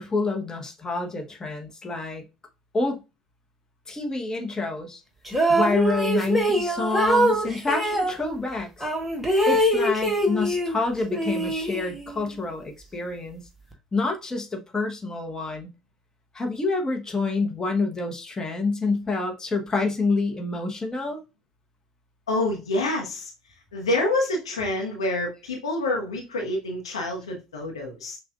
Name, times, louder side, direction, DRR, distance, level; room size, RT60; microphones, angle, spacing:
voice 1, 0.0-2.2 2.7-3.0 3.9-5.0 5.5-8.9 9.5-13.4 13.9-15.7 16.3-21.2, left 3 dB, 20° left, 1.2 m, -27 dB
sound 1, 5.3-8.1 8.8-10.8 11.1-12.2, right 1 dB, 5° right, 1.3 m, -23 dB
voice 2, 22.3-23.3 23.7-28.2, left 2 dB, 80° left, 1.0 m, -27 dB
6.1 x 2.5 x 2.4 m
figure-of-eight pair, 60°, 3 cm